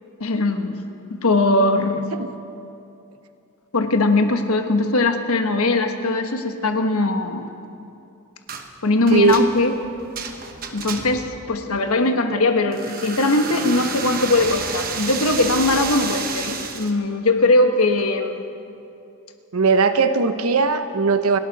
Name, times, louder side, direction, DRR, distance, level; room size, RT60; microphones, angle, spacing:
voice 1, 0.2-0.8 1.1-2.1 3.7-7.5 8.8-9.7 10.7-18.5, left 2 dB, 90° left, 6 dB, 1.3 m, -20 dB
sound 1, 8.5-8.7 9.1-11.3 12.7-17.0, right 6 dB, 45° right, 1.1 m, -31 dB
voice 2, 9.1-9.5 19.5-21.4, right 4 dB, 85° right, 10 dB, 0.9 m, -18 dB
sound 2, 10.7-11.5 11.9-12.0, equal, 15° right, 2.3 m, -43 dB
29.5 x 11.5 x 4.2 m, 2.7 s
head